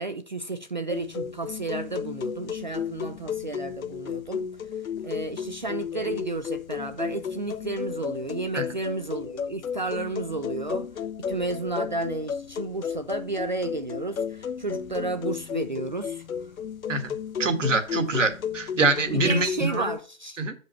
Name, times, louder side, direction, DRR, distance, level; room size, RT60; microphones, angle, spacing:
voice 1, 0.0-4.5 5.0-10.9 11.3-16.2 17.9-18.2 19.1-20.4, right 2 dB, 35° right, 0.4 m, -32 dB
sound 1, 0.9-20.0, left 7 dB, 80° left, 0.6 m, -34 dB
voice 2, 16.9-19.9 20.4-20.5, right 3 dB, 65° right, 1.7 m, -25 dB
7.0 x 5.1 x 4.5 m
figure-of-eight pair, 150°, 41 cm